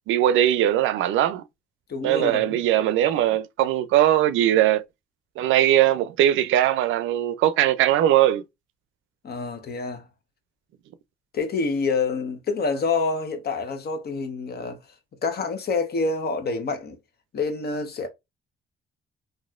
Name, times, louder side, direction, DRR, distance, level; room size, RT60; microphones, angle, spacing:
voice 1, 0.1-1.4 2.0-4.8 5.4-8.4, right 12 dB, 80° right, 0.4 m, -20 dB
voice 2, 1.9-2.6 9.2-10.0 11.3-14.8 15.2-17.0 17.3-18.1, left 4 dB, 55° left, 1.0 m, -27 dB
4.1 x 2.6 x 2.4 m
cardioid pair, 90°, 20 cm